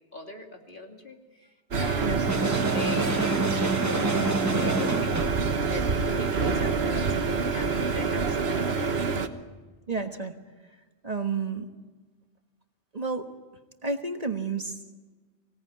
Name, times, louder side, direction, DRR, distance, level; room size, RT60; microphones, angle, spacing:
voice 1, 0.1-1.2 1.8-2.2 2.7-3.4 4.5-5.1 5.7-9.2, left 1 dB, 50° left, 2 dB, 3.0 m, -39 dB
sound 1, 1.7-9.3, right 4 dB, 70° right, 1.6 m, -27 dB
sound 2, 2.3-5.4, right 2 dB, 15° right, 1.0 m, -28 dB
voice 2, 9.9-10.4 11.0-11.7 12.9-13.3 13.8-14.8, right 4 dB, 35° right, 5 dB, 1.4 m, -30 dB
25.0 x 17.5 x 9.5 m, 1.3 s
omnidirectional pair, 1.1 m